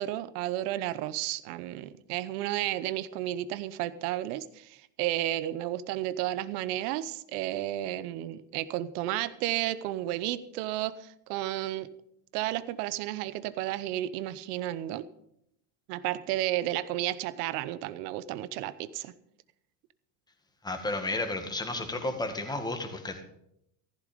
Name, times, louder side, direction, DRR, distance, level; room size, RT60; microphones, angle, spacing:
voice 1, 0.0-11.9 12.3-15.1 15.9-19.1, right 14 dB, 70° right, 15 dB, 1.1 m, -32 dB
voice 2, 20.6-23.2, left 2 dB, 10° left, 5 dB, 1.9 m, -32 dB
14.5 x 11.5 x 5.2 m, 0.76 s
supercardioid pair, 110°, 47 cm